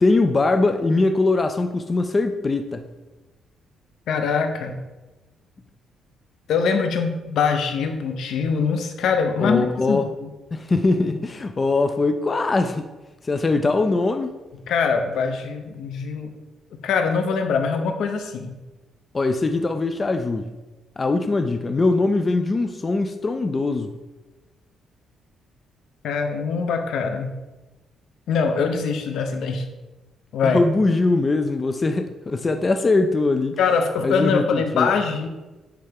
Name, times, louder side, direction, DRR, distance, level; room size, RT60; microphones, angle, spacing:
voice 1, 0.0-2.9 9.4-10.1 10.5-12.9 13.2-14.4 19.1-20.5 21.0-23.9 30.4-33.6 34.0-34.9, left 3 dB, 25° left, 7 dB, 0.3 m, -21 dB
voice 2, 4.1-4.8 6.5-10.3 14.7-16.3 16.7-18.5 26.0-27.3 28.3-29.6 30.3-30.6 33.6-35.3, left 5 dB, 70° left, 6 dB, 0.7 m, -23 dB
9.3 x 3.3 x 3.5 m, 1.1 s
cardioid pair, 140°, 0 cm